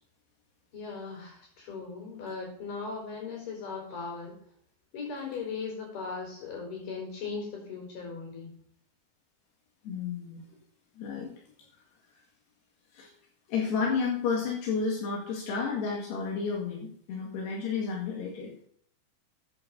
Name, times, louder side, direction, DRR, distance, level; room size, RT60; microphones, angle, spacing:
voice 1, 0.7-4.3 4.9-8.6, left 4 dB, 55° left, -1 dB, 5.9 m, -38 dB
voice 2, 9.8-10.5 11.0-11.3 12.9-13.1 13.5-18.5, left 5 dB, 85° left, -2 dB, 4.1 m, -31 dB
14.0 x 8.6 x 4.0 m, 0.62 s
omnidirectional pair, 4.7 m